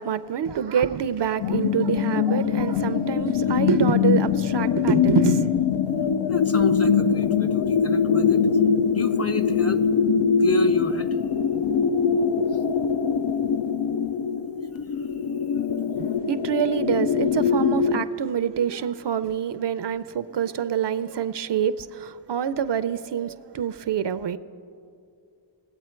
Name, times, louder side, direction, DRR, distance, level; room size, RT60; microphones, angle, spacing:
voice 1, 0.0-6.1 16.0-24.4, right 8 dB, 60° right, 0.5 m, -26 dB
sound 1, 1.4-18.0, left 6 dB, 70° left, 0.5 m, -22 dB
voice 2, 6.3-8.4 8.9-9.8 10.4-11.2 12.5-12.6 14.8-15.7 15.9-16.2, left 4 dB, 30° left, 0.6 m, -31 dB
19.5 x 8.0 x 4.4 m
cardioid pair, 55°, 48 cm